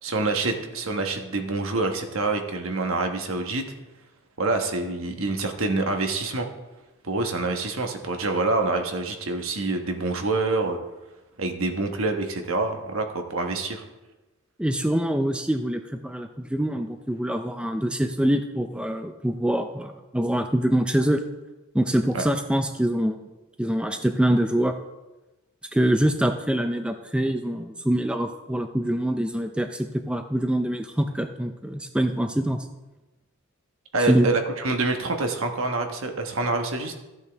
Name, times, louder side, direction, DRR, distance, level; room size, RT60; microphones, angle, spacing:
voice 1, 0.0-3.6 4.4-6.5 7.0-10.8 11.4-13.8 22.1-22.2 33.9-36.9, right 3 dB, 65° right, 4 dB, 1.3 m, -26 dB
voice 2, 14.6-21.2 21.7-23.2 23.6-24.8 25.7-32.7 34.0-34.3, right 1 dB, 5° right, 7 dB, 0.4 m, -24 dB
14.0 x 8.2 x 3.5 m, 1.1 s
head